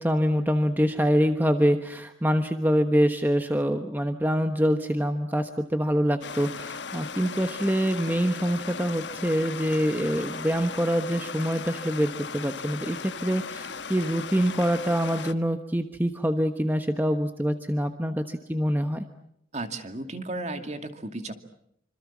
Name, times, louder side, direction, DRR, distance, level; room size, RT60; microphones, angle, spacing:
voice 1, 0.0-19.0, equal, 10° right, 7 dB, 1.2 m, -25 dB
Stream, 6.2-15.3, left 5 dB, 75° left, 1.2 m, -37 dB
voice 2, 19.5-21.3, right 2 dB, 40° right, 7 dB, 2.5 m, -34 dB
26.5 x 26.5 x 7.4 m, 0.72 s
head